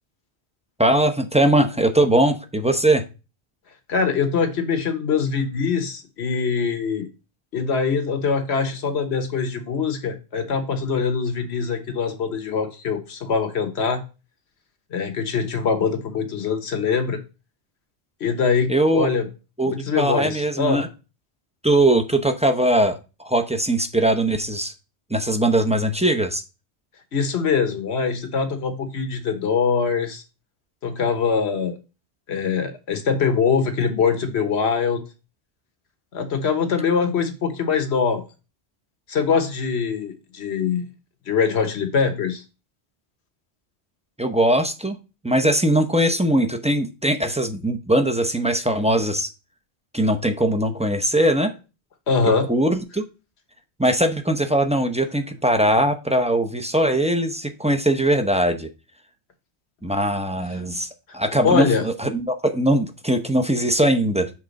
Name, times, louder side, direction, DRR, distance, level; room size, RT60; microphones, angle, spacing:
voice 1, 0.8-3.0 18.7-19.1 19.6-20.9 21.6-24.7 25.1-26.4 44.2-45.0 45.2-49.3 49.9-51.5 52.2-53.0 53.8-58.7 59.8-60.9 61.1-64.3, right 1 dB, 10° right, 6 dB, 0.6 m, -20 dB
voice 2, 3.9-7.1 7.5-14.0 14.9-17.2 18.2-19.3 19.6-20.8 27.1-30.2 30.8-31.8 32.3-35.0 36.1-38.2 39.1-40.9 41.3-42.4 52.1-52.5 61.4-61.9, left 5 dB, 80° left, 7 dB, 1.4 m, -23 dB
7.3 x 3.7 x 5.1 m, 0.30 s
omnidirectional pair, 1.1 m